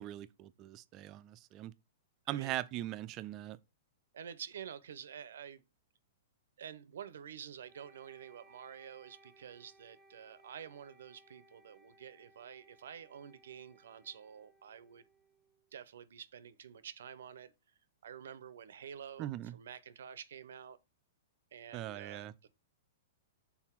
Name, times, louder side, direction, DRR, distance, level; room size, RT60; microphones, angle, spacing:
voice 1, 0.0-1.7 2.3-3.6 19.2-19.6 21.7-22.3, right 14 dB, 35° right, 0.4 m, -40 dB
voice 2, 2.3-2.6 4.1-5.6 6.6-15.0 15.7-17.5 18.0-20.8 21.5-22.5, right 8 dB, 75° right, 0.6 m, -49 dB
Wind instrument woodwind instrument, 7.6-15.7, right 1 dB, 5° right, 0.9 m, -65 dB
5.9 x 3.9 x 4.5 m
hypercardioid pair, 135°, 0 cm